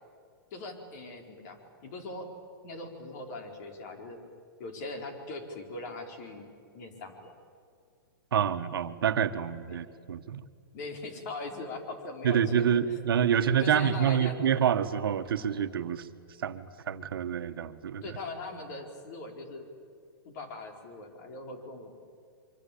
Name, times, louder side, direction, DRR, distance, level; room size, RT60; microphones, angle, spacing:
voice 1, 0.5-2.3 2.6-4.2 4.6-6.5 6.7-7.3 10.7-12.8 13.4-14.4 18.0-19.7 20.2-22.0, left 2 dB, 50° left, 4 dB, 4.6 m, -40 dB
voice 2, 8.3-10.4 12.2-16.1 16.4-18.2, right 8 dB, 80° right, 9 dB, 1.6 m, -27 dB
25.0 x 24.5 x 8.7 m, 2.2 s
hypercardioid pair, 145°, 12 cm